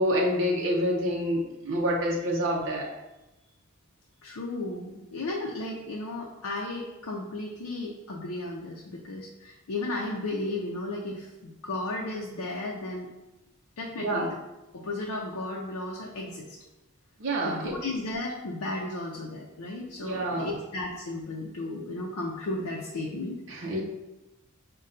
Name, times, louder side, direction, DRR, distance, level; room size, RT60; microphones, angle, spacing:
voice 1, 0.0-2.9 14.0-14.2 17.2-17.7 20.0-20.6 23.5-23.8, equal, 55° right, -3 dB, 0.6 m, -27 dB
voice 2, 4.2-13.1 13.8-14.4 14.7-16.6 17.4-23.7, left 2 dB, 80° left, -1 dB, 0.5 m, -34 dB
5.3 x 2.2 x 3.8 m, 1.0 s
head